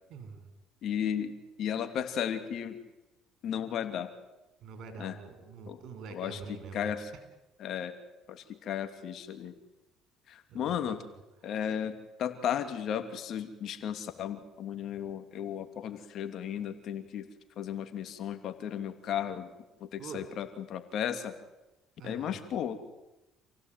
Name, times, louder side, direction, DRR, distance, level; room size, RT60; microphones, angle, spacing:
voice 1, 0.1-0.5 4.6-6.9 10.5-10.9 11.6-11.7 20.0-20.3 22.0-22.4, right 5 dB, 65° right, 8 dB, 5.4 m, -45 dB
voice 2, 0.8-1.3 1.6-2.8 3.4-4.1 5.0-5.2 5.7-5.8 6.1-7.1 7.6-7.9 8.3-9.5 10.3-11.0 11.4-17.3 17.6-19.5 19.8-21.3 22.0-22.8, left 9 dB, 60° left, 8 dB, 2.8 m, -34 dB
28.0 x 16.5 x 9.4 m, 1.0 s
supercardioid pair, 85°, 0 cm